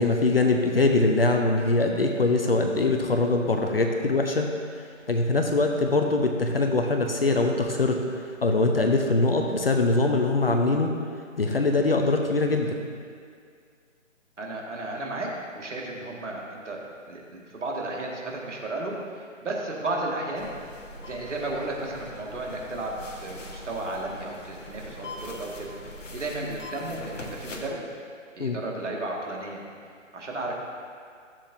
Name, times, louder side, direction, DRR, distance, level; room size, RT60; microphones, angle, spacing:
voice 1, 0.0-4.5 5.1-8.0 8.4-10.9 11.4-12.9 28.4-28.6, left 2 dB, 45° left, 3 dB, 0.7 m, -23 dB
voice 2, 14.4-16.8 17.1-20.5 21.0-27.8 28.4-29.6 30.1-30.5, right 2 dB, 65° right, -2 dB, 2.0 m, -33 dB
sound 1, 20.3-27.7, left 1 dB, 70° left, 1.4 m, -42 dB
15.0 x 7.4 x 2.7 m, 2.2 s
figure-of-eight pair, 165°, 39 cm